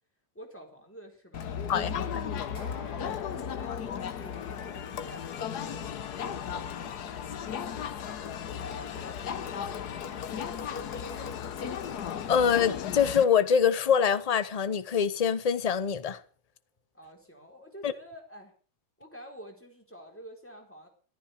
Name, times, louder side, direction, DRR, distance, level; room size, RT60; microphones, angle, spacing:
voice 1, 0.3-2.2 3.0-7.7 8.6-10.0 10.5-11.9 16.9-18.5 19.0-20.9, equal, 5° left, 4.4 m, -49 dB
Crowd, 1.3-13.2, left 8 dB, 65° left, 1.5 m, -35 dB
voice 2, 1.7-2.0 12.3-16.2 17.8-17.9, left 7 dB, 35° left, 0.6 m, -24 dB
sound 1, 2.5-5.2 11.2-15.2, left 2 dB, 90° left, 8.5 m, -51 dB
14.5 x 13.5 x 6.6 m
omnidirectional pair, 2.0 m